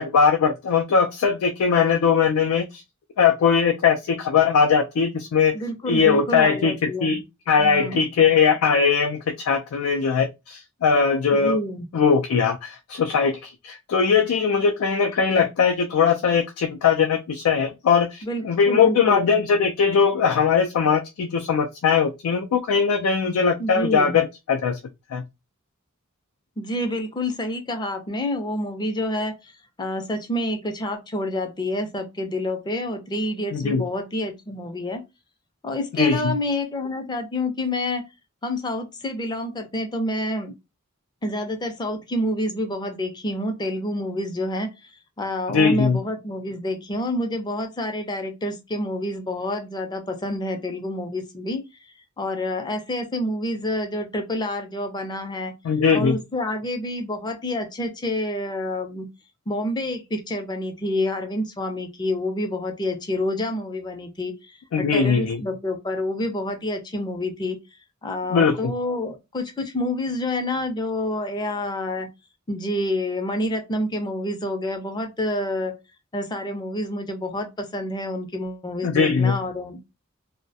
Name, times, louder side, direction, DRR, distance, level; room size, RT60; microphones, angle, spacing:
voice 1, 0.0-2.8 3.2-5.6 5.9-7.2 7.5-11.6 11.9-24.8 25.1-25.2 33.5-33.8 35.9-36.3 45.5-46.0 55.6-56.2 64.7-65.4 68.3-68.7 78.8-79.4, left 6 dB, 90° left, 0.4 m, -20 dB
voice 2, 5.5-7.2 7.6-8.0 11.3-11.9 18.2-19.3 23.6-24.2 26.6-29.5 29.8-35.0 35.6-38.0 38.4-40.5 41.2-51.6 52.2-55.5 55.9-59.1 59.5-67.6 68.0-72.1 72.5-75.8 76.1-79.8, left 1 dB, 20° left, 0.4 m, -28 dB
2.3 x 2.1 x 2.6 m
head